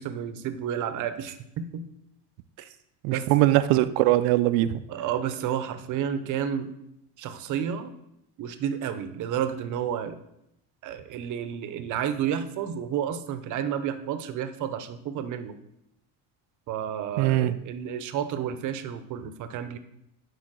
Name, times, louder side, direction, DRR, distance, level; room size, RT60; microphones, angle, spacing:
voice 1, 0.0-1.9 2.6-2.7 3.1-3.3 4.9-6.7 7.2-7.9 8.4-10.2 10.8-15.6 16.7-19.8, right 9 dB, 45° right, 10 dB, 0.8 m, -31 dB
voice 2, 3.0-4.8 17.2-17.5, right 15 dB, 85° right, 12 dB, 0.6 m, -21 dB
8.7 x 4.7 x 6.2 m, 0.81 s
cardioid pair, 150°, 40 cm